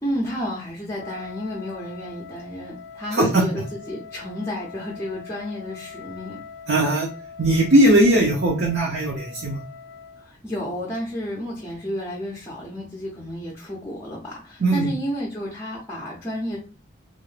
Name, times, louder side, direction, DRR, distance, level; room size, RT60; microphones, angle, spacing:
voice 1, 0.0-6.4 10.2-16.6, equal, 15° left, -4 dB, 0.5 m, -31 dB
Wind instrument woodwind instrument, 0.9-10.3, left 6 dB, 65° left, 0.4 m, -42 dB
voice 2, 3.1-3.4 6.7-7.1 7.4-9.6 14.6-14.9, right 1 dB, 65° right, -2 dB, 0.6 m, -19 dB
2.4 x 2.1 x 3.1 m, 0.37 s
head